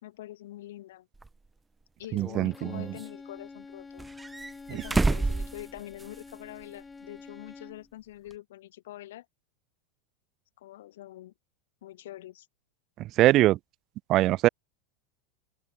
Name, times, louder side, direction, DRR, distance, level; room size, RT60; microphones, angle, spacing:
voice 1, 0.0-1.1 2.0-4.0 4.7-9.3 10.6-11.3 11.8-12.5, left 14 dB, 80° left, 2.8 m, -45 dB
sound 1, 1.2-1.3 2.2-3.1 4.0-6.3 6.6-6.7 8.3-8.4, right 3 dB, 10° right, 0.7 m, -30 dB
voice 2, 2.1-2.8 13.2-13.6 14.1-14.5, right 15 dB, 35° right, 0.3 m, -22 dB
Bowed string instrument, 2.5-7.9, left 4 dB, 10° left, 4.1 m, -47 dB
open air
supercardioid pair, 150°, 0 cm